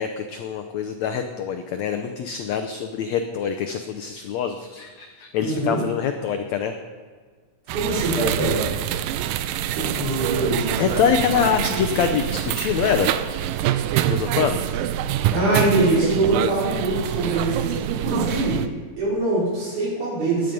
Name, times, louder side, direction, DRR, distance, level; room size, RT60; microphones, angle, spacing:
voice 1, 0.0-6.7 10.8-13.1 14.0-14.6, left 7 dB, 75° left, 6 dB, 1.6 m, -25 dB
voice 2, 5.4-5.8 7.7-8.7 9.7-10.8 15.3-18.6 19.0-20.5, right 2 dB, 60° right, -6 dB, 6.3 m, -23 dB
sound 1, 7.7-18.7, right 11 dB, 85° right, 2.3 m, -25 dB
16.5 x 11.0 x 5.3 m, 1.5 s
omnidirectional pair, 4.0 m